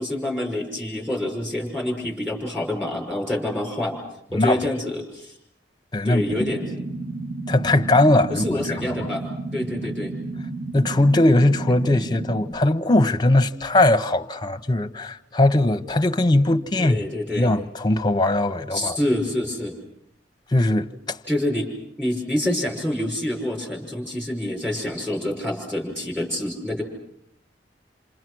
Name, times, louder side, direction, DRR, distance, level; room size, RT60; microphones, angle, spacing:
voice 1, 0.0-4.0 4.3-5.3 6.0-6.8 8.3-10.1 16.8-17.5 18.7-19.8 21.3-26.8, left 1 dB, 10° right, 5.4 m, -27 dB
sound 1, 6.2-12.4, right 2 dB, 45° right, 5.4 m, -32 dB
voice 2, 7.5-8.4 8.8-8.9 10.7-17.0 17.3-19.0 20.5-21.2, left 1 dB, 25° left, 0.9 m, -20 dB
28.5 x 27.0 x 6.3 m
head